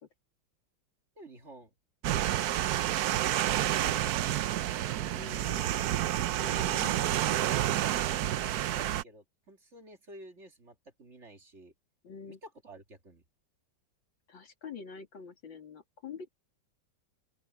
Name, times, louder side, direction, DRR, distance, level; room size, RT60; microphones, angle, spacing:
voice 1, 1.2-1.7 2.1-2.3 5.0-5.8 7.6-11.7 12.3-13.2, right 1 dB, 35° right, 2.3 m, -51 dB
sound 1, 2.0-9.0, right 12 dB, 65° right, 1.0 m, -29 dB
voice 2, 5.2-5.5 6.4-7.0 12.0-12.4 14.3-16.3, left 6 dB, 80° left, 3.4 m, -45 dB
open air
omnidirectional pair, 2.1 m